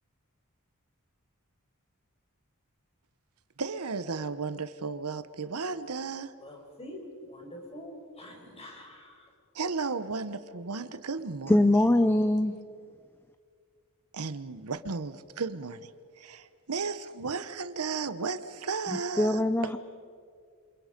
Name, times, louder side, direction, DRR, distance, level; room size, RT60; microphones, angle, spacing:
voice 1, 3.6-6.3 9.5-11.7 14.1-15.9 16.2-19.4, right 4 dB, 75° right, 13 dB, 1.0 m, -34 dB
voice 2, 6.4-9.3, left 1 dB, 30° left, 1 dB, 5.3 m, -45 dB
voice 3, 11.5-12.5 19.2-19.8, left 1 dB, 10° left, 10 dB, 0.6 m, -22 dB
28.0 x 27.0 x 5.2 m, 2.1 s
head